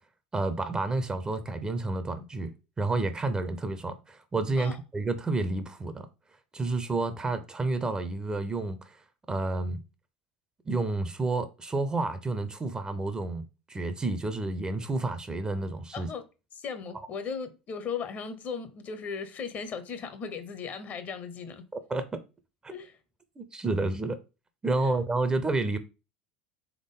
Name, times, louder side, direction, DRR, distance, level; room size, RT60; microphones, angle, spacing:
voice 1, 0.3-2.5 2.8-6.1 6.5-9.8 10.7-16.1 21.9-22.2 22.6-22.7 23.4-24.2 24.6-25.8, right 2 dB, 15° right, 0.5 m, -30 dB
voice 2, 16.5-21.6 22.7-22.9 24.8-24.9, left 6 dB, 40° left, 0.7 m, -37 dB
3.6 x 3.6 x 3.6 m
figure-of-eight pair, 75°, 5 cm